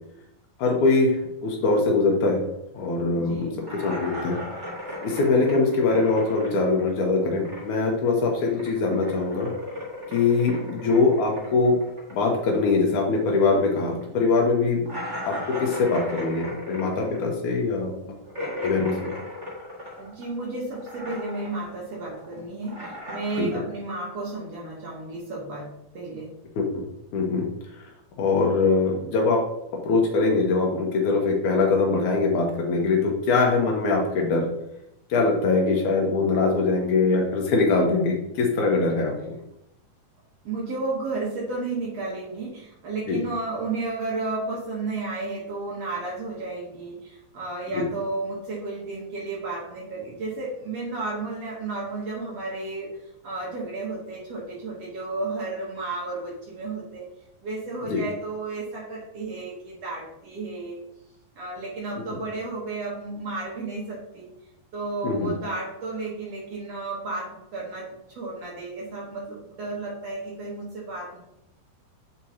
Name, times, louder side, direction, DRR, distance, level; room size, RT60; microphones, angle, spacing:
voice 1, 0.6-2.5 2.7-4.4 5.0-9.5 10.1-11.8 12.1-14.9 15.3-18.1 18.6-19.1 23.4-23.6 26.6-26.8 27.1-27.5 27.8-27.9 28.2-29.4 29.7-34.5 35.1-39.1 43.1-43.2 47.8-47.9 57.9-58.0 65.0-65.3, left 3 dB, 70° left, 0 dB, 1.9 m, -22 dB
voice 2, 3.2-3.7 20.0-26.3 40.4-52.9 53.2-57.1 57.4-60.8 61.3-64.3 64.7-71.2, right 3 dB, 65° right, -4 dB, 1.6 m, -33 dB
sound 1, 3.6-7.9 8.2-13.2 13.5-13.6 14.0-14.1 14.9-20.4 20.7-21.6 21.9-23.4, left 1 dB, 45° right, 0.6 m, -36 dB
7.3 x 4.8 x 2.8 m, 0.83 s
omnidirectional pair, 4.4 m